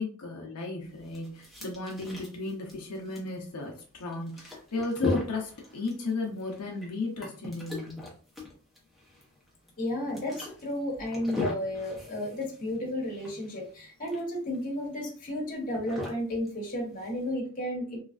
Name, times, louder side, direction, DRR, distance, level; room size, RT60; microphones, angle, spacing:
voice 1, 0.0-8.0, left 3 dB, 85° left, 0 dB, 0.7 m, -34 dB
sound 1, 0.8-17.3, left 2 dB, ahead, 0.8 m, -40 dB
voice 2, 9.8-18.0, left 1 dB, 40° left, -1 dB, 1.0 m, -33 dB
3.2 x 2.3 x 2.4 m, 0.41 s
head